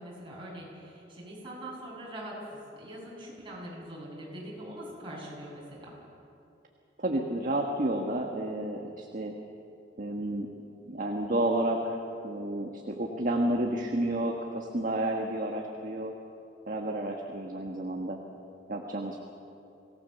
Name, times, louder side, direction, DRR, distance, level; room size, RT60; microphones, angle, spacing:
voice 1, 0.0-6.0, right 1 dB, 30° right, -4 dB, 7.3 m, -43 dB
voice 2, 7.0-9.3 10.0-10.5 10.8-12.0 12.2-16.1 16.7-18.2 18.7-19.2, right 1 dB, 45° right, 1 dB, 1.5 m, -31 dB
25.0 x 18.5 x 6.9 m, 2.8 s
head